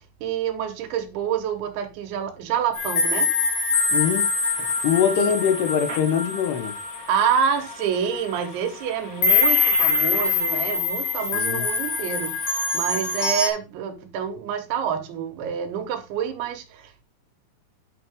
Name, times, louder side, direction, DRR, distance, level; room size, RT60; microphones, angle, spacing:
voice 1, 0.2-3.3 5.2-5.3 7.1-17.0, right 8 dB, 90° right, 3.6 m, -27 dB
sound 1, 2.7-7.8 8.3-8.5 9.2-13.5, left 4 dB, 50° left, 2.0 m, -24 dB
voice 2, 3.9-4.3 4.6-6.8 11.3-11.7, left 8 dB, 75° left, 3.0 m, -23 dB
sound 2, 4.4-10.8, right 4 dB, 70° right, 1.1 m, -40 dB
9.7 x 5.5 x 3.6 m
omnidirectional pair, 5.1 m